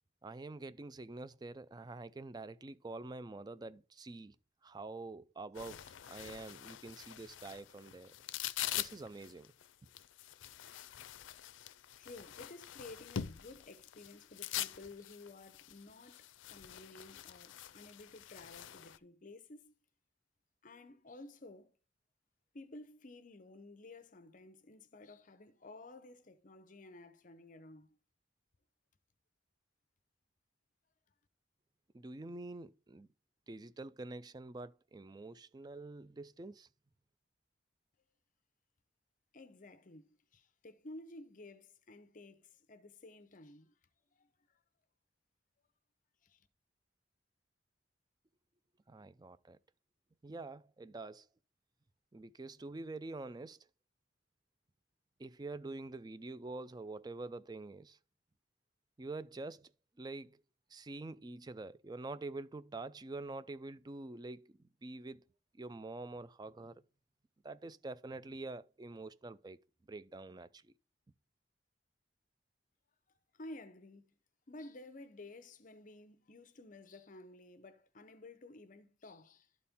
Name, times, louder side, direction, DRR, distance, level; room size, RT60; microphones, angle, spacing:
voice 1, 0.2-4.4 4.6-8.1 8.7-9.5 31.9-33.1 33.5-36.7 48.9-49.6 50.2-51.3 52.1-53.7 55.2-58.0 59.0-59.7 60.0-60.4 60.7-65.2 65.5-66.8 67.4-69.6 69.9-70.7, right 2 dB, 20° right, 0.4 m, -46 dB
sound 1, 5.5-19.0, left 11 dB, 85° left, 0.4 m, -45 dB
voice 2, 12.0-19.7 20.6-21.8 22.5-28.0 39.3-43.7 44.1-44.6 46.2-46.5 73.3-74.1 74.5-79.5, left 2 dB, 45° left, 0.7 m, -53 dB
12.0 x 4.2 x 3.6 m
head